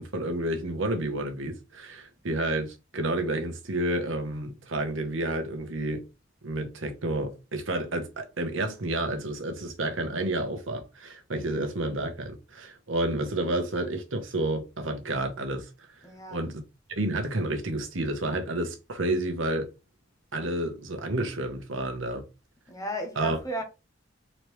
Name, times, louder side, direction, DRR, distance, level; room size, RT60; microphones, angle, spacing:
voice 1, 0.0-6.0 6.4-15.7 16.3-16.5 17.0-19.7 20.3-22.2 23.2-23.4, right 1 dB, 85° right, 1.0 m, -30 dB
voice 2, 16.0-16.5 22.7-23.6, right 1 dB, 20° left, 1.1 m, -34 dB
4.1 x 3.2 x 3.1 m
head